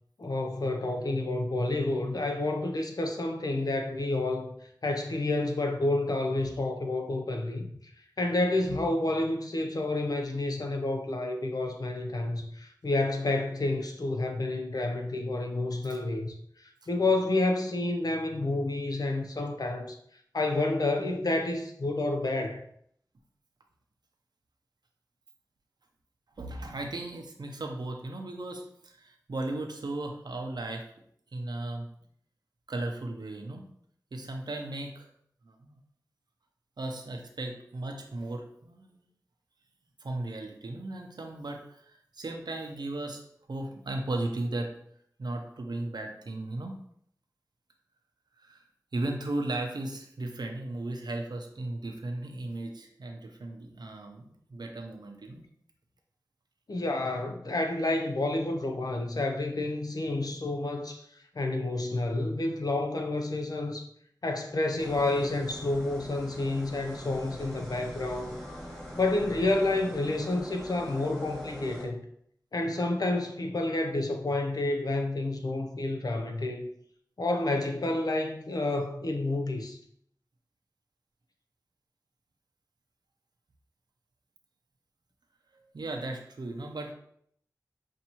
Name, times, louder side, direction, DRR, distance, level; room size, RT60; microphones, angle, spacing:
voice 1, 0.2-4.5 4.8-7.7 8.2-20.0 20.3-22.6 56.7-63.9 64.2-68.4 69.0-72.0 72.5-76.7 77.2-79.8, left 2 dB, 65° left, 0.6 m, -29 dB
voice 2, 26.4-30.8 31.3-31.9 32.7-33.6 34.1-35.1 35.4-35.8 36.8-39.0 40.0-43.2 43.5-44.7 45.2-46.7 48.4-48.6 48.9-55.5 85.5-86.9, right 2 dB, 80° right, 0.7 m, -36 dB
sound 1, 64.8-71.9, equal, 10° left, 1.8 m, -43 dB
5.6 x 2.6 x 2.9 m
wide cardioid pair, 45°, 7 cm